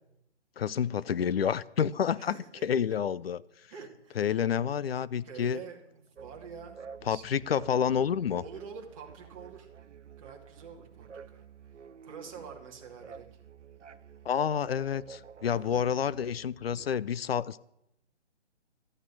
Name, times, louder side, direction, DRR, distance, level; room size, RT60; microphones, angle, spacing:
voice 1, 0.6-2.4 2.6-3.4 4.2-5.6 7.1-8.4 14.3-17.6, left 8 dB, 60° left, 0.6 m, -29 dB
voice 2, 2.2-2.7 3.7-4.2 5.2-6.8 7.1-7.5 8.3-9.7 10.2-11.5 12.1-13.4 15.5-15.9, right 6 dB, 30° right, 2.6 m, -47 dB
sound 1, 6.1-17.0, right 6 dB, 90° right, 0.9 m, -50 dB
13.5 x 9.0 x 8.4 m
hypercardioid pair, 160°, 35 cm